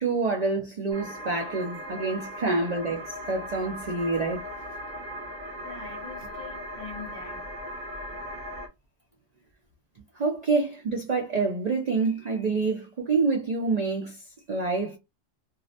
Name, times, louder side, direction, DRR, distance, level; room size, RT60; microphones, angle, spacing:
voice 1, 0.0-4.4 10.2-15.0, right 3 dB, 80° right, 0.3 m, -27 dB
sound 1, 0.9-8.7, equal, 40° right, 0.8 m, -38 dB
voice 2, 5.6-8.3, left 5 dB, 40° left, 0.5 m, -45 dB
2.5 x 2.0 x 2.6 m
omnidirectional pair, 1.4 m